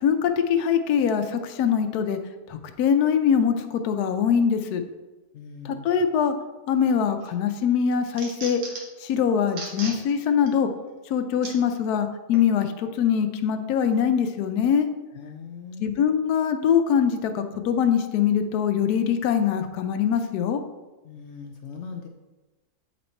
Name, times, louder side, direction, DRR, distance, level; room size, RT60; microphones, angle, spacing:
voice 1, 0.0-2.2 2.5-4.8 5.6-6.3 6.7-8.6 9.0-10.7 11.1-14.9 15.8-20.6, left 7 dB, 80° left, 7 dB, 1.1 m, -23 dB
voice 2, 5.3-5.9 15.1-15.9 21.0-22.1, left 5 dB, 65° left, 3 dB, 0.7 m, -40 dB
sound 1, 6.9-7.3 7.7-9.0 9.5-10.0 10.5-10.6 11.4-11.6 12.3-12.5, right 3 dB, 90° right, 1.8 m, -36 dB
8.5 x 4.1 x 4.3 m, 1.1 s
omnidirectional pair, 1.6 m